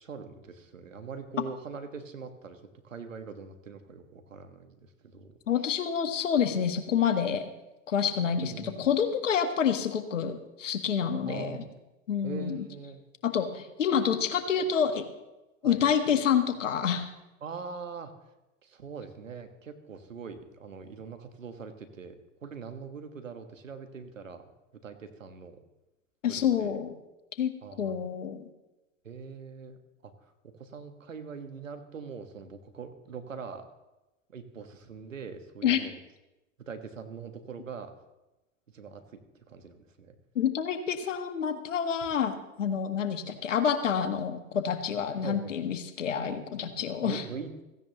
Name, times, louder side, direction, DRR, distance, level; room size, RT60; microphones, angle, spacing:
voice 1, 0.0-5.4 8.4-8.8 11.2-11.6 12.2-13.0 15.6-15.8 17.4-18.1 18.6-24.4 24.8-25.6 26.3-26.8 27.6-28.0 29.0-29.8 30.0-33.7 34.3-36.0 36.7-37.9 38.7-40.1 45.2-45.5 46.8-47.6, right 5 dB, 80° right, 7 dB, 1.5 m, -42 dB
voice 2, 5.5-7.5 7.9-11.6 12.1-12.7 13.2-15.1 15.6-17.1 26.2-26.9 27.4-27.5 27.8-28.5 35.6-35.9 40.3-47.2, left 8 dB, 70° left, 9 dB, 1.4 m, -28 dB
16.5 x 15.5 x 3.0 m, 1.0 s
figure-of-eight pair, 85°, 39 cm